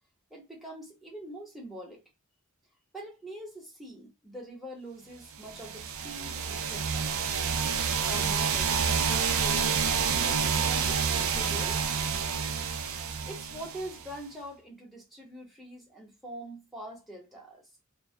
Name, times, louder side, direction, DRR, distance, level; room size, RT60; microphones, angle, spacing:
voice 1, 0.3-2.0 2.9-7.2 8.1-11.8 13.2-17.6, right 1 dB, ahead, 0.9 m, -44 dB
sound 1, 5.4-14.2, right 6 dB, 70° right, 0.4 m, -28 dB
2.6 x 2.2 x 2.2 m
head